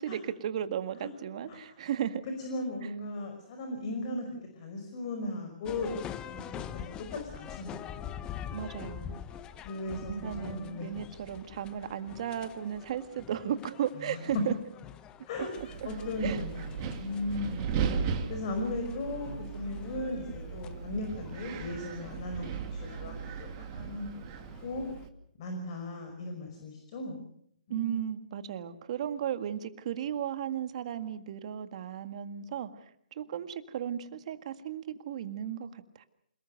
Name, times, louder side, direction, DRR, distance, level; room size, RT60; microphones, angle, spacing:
voice 1, 0.0-2.2 8.5-9.2 10.0-14.5 16.2-16.4 27.7-36.0, right 9 dB, 45° right, 10 dB, 1.9 m, -35 dB
voice 2, 2.4-5.9 6.3-8.1 9.6-10.9 14.1-14.2 15.3-17.9 18.3-24.3 24.6-24.8 25.4-27.2 27.7-28.0, left 2 dB, 40° left, 4 dB, 5.5 m, -37 dB
sound 1, 5.6-25.1, left 9 dB, 20° left, 1.0 m, -46 dB
Wind, 15.6-25.1, right 6 dB, 30° right, 2.5 m, -37 dB
28.0 x 19.5 x 6.6 m, 0.69 s
figure-of-eight pair, 140°, 5 cm